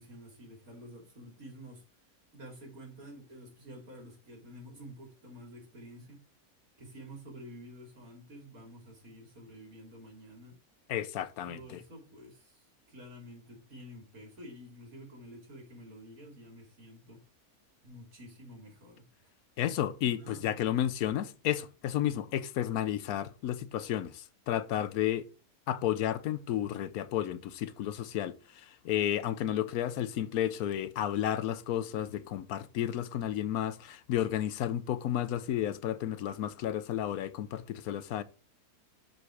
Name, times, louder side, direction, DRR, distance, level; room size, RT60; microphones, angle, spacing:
voice 1, 0.0-1.8 2.3-6.2 6.8-10.6 11.4-17.3 17.8-19.3 20.2-20.6, equal, 65° right, 3.1 m, -50 dB
voice 2, 10.9-11.6 19.6-25.3 25.7-38.2, left 11 dB, 75° left, 1.1 m, -32 dB
6.5 x 5.3 x 4.7 m
omnidirectional pair, 1.6 m